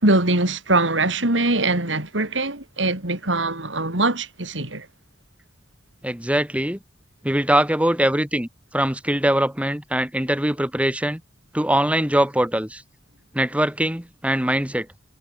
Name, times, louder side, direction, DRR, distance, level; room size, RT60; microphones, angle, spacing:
voice 1, 0.0-4.9, right 2 dB, 85° right, 5.2 m, -22 dB
voice 2, 6.0-6.8 7.2-8.5 8.7-11.2 11.5-12.8 13.3-14.9, right 1 dB, 5° right, 4.4 m, -22 dB
head